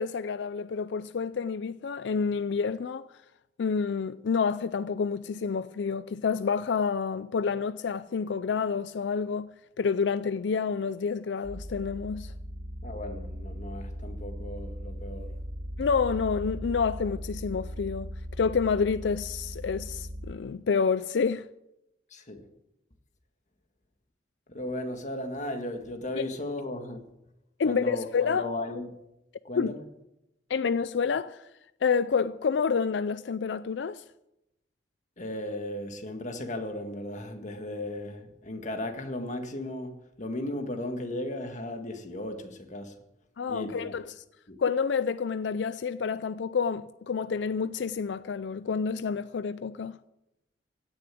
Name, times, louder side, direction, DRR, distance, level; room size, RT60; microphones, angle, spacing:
voice 1, 0.0-3.1 3.6-9.5 9.8-12.3 15.8-18.1 18.4-21.4 27.6-28.5 29.6-29.8 30.5-31.5 31.8-34.0 43.4-44.1 44.6-50.0, left 5 dB, 85° left, 0.4 m, -28 dB
sound 1, 11.4-20.3, equal, 45° right, 2.8 m, -38 dB
voice 2, 12.8-15.4 22.1-22.5 24.5-27.0 27.6-28.9 29.4-29.8 35.2-43.0 43.5-44.0 44.5-44.6, left 1 dB, 45° left, 1.7 m, -36 dB
16.5 x 6.9 x 9.1 m
head